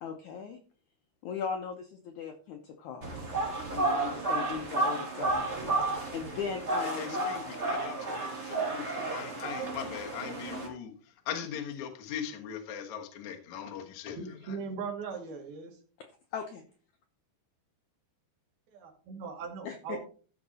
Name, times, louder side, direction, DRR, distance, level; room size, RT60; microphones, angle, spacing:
voice 1, 0.0-0.6 1.2-3.1 3.7-7.3 7.5-7.6 16.3-16.6 19.6-20.0, left 6 dB, 80° left, 4 dB, 1.7 m, -38 dB
sound 1, 3.0-10.7, right 2 dB, 20° right, 2.1 m, -32 dB
voice 2, 7.0-10.9 11.3-14.2, left 8 dB, 60° left, 3 dB, 2.2 m, -40 dB
voice 3, 14.1-15.8 18.7-20.0, right 5 dB, 70° right, 2 dB, 4.0 m, -39 dB
14.0 x 5.9 x 4.1 m, 0.40 s
omnidirectional pair, 4.6 m